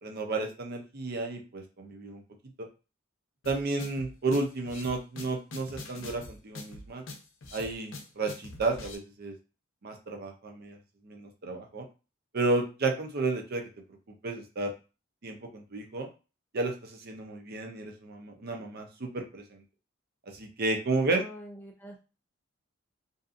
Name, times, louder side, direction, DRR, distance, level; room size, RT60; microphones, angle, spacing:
voice 1, 0.0-2.2 2.6-2.7 3.5-7.0 7.5-9.3 9.8-10.8 11.0-11.9 12.3-13.6 14.2-14.7 15.2-16.1 16.5-19.6 20.3-21.2, right 3 dB, 50° right, 4 dB, 0.6 m, -32 dB
sound 1, 3.4-9.0, left 2 dB, 65° left, 0.6 m, -44 dB
voice 2, 21.1-22.0, left 1 dB, 10° left, 0 dB, 0.3 m, -45 dB
2.6 x 2.4 x 2.4 m, 0.31 s
head